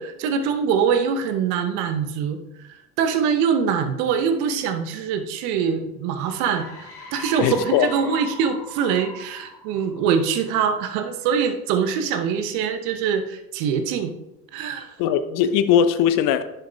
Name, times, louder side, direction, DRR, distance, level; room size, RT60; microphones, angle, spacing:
voice 1, 0.0-2.7 3.0-14.1 14.5-14.9, right 7 dB, 55° right, 8 dB, 0.9 m, -23 dB
sound 1, 6.2-10.7, equal, 65° left, 2.7 m, -39 dB
voice 2, 7.4-7.9 15.0-16.4, left 9 dB, 45° left, 11 dB, 0.6 m, -19 dB
11.0 x 6.8 x 2.4 m, 0.92 s
figure-of-eight pair, 70°, 46 cm